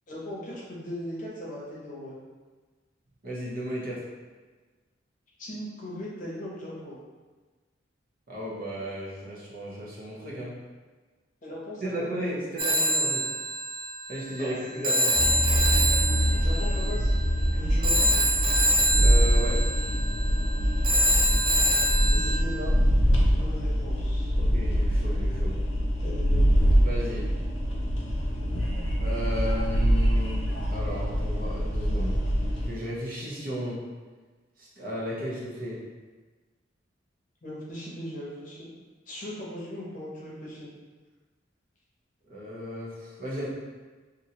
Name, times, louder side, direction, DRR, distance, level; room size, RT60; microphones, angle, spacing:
voice 1, 0.1-2.2 5.4-6.9 11.4-12.1 14.4-14.9 16.4-17.2 17.5-18.1 22.1-22.7 23.3-24.3 26.0-26.5 37.4-38.7 39.1-40.7, left 1 dB, 45° left, -5 dB, 0.8 m, -38 dB
voice 2, 3.2-4.0 8.3-10.5 11.8-13.2 14.1-15.2 19.0-19.6 24.3-25.5 26.8-27.3 29.0-30.4 30.7-32.2 32.7-33.8 34.6-35.8 42.3-43.5, equal, 50° right, -6 dB, 0.8 m, -34 dB
Telephone, 12.6-22.4, right 1 dB, 25° right, 0.3 m, -26 dB
sound 1, 15.1-32.7, equal, 80° left, 0.6 m, -24 dB
2.9 x 2.6 x 2.8 m, 1.3 s
head